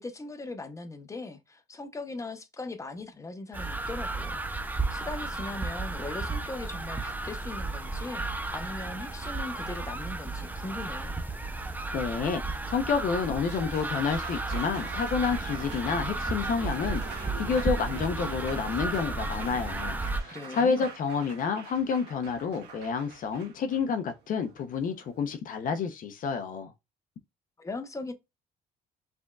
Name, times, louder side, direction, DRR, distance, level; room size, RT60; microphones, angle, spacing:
voice 1, 0.0-4.4 4.9-11.1 20.3-20.9 27.6-28.1, left 3 dB, 20° left, 0.8 m, -39 dB
sound 1, 3.5-20.2, right 3 dB, 10° right, 0.6 m, -33 dB
voice 2, 11.9-26.7, left 6 dB, 55° left, 0.7 m, -29 dB
Applause, 13.2-25.3, right 6 dB, 85° right, 1.5 m, -44 dB
5.1 x 3.5 x 2.3 m
cardioid pair, 110°, 17 cm